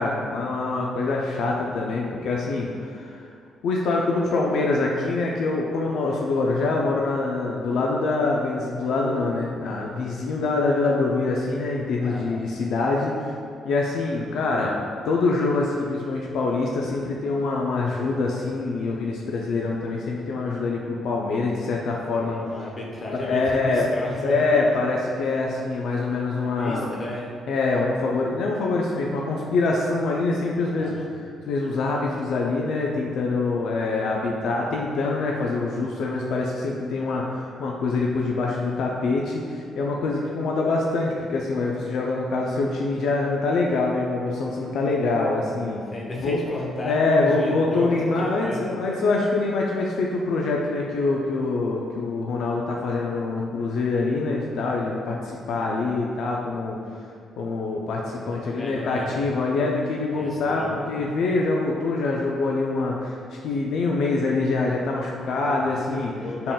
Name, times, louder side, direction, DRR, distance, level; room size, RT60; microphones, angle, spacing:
voice 1, 0.0-3.3 3.6-13.2 13.7-14.8 15.0-22.4 23.2-23.8 24.2-26.8 27.5-31.0 31.5-45.8 46.2-46.4 46.8-56.8 57.4-63.2 63.4-66.2 66.4-66.5, left 3 dB, 75° left, -2 dB, 0.3 m, -25 dB
voice 2, 12.0-12.5 22.1-24.7 26.4-27.3 30.7-31.1 45.7-48.7 58.3-59.4 60.1-60.7 65.4-65.7 66.1-66.5, left 1 dB, 35° left, -2 dB, 0.7 m, -34 dB
3.9 x 3.6 x 2.2 m, 2.3 s
cardioid pair, 90°, 0 cm